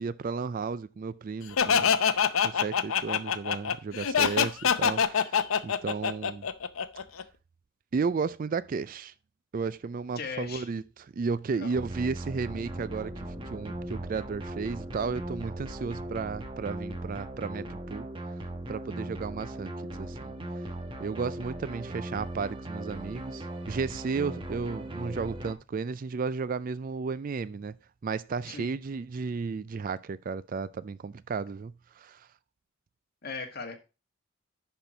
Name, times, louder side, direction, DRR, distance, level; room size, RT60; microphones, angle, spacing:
voice 1, 0.0-6.5 7.9-9.1 9.5-18.1 18.7-20.3 21.0-27.8 28.0-32.3, right 5 dB, 40° right, 0.3 m, -34 dB
Laughter, 1.6-7.2, left 7 dB, 80° left, 0.7 m, -25 dB
voice 2, 10.2-10.7 11.5-11.8 28.5-28.7 33.2-33.7, left 4 dB, 50° left, 1.8 m, -38 dB
sound 1, 11.7-25.5, right 1 dB, 25° right, 1.2 m, -39 dB
sound 2, 12.3-18.1, equal, 65° right, 1.6 m, -48 dB
11.0 x 4.4 x 5.0 m
head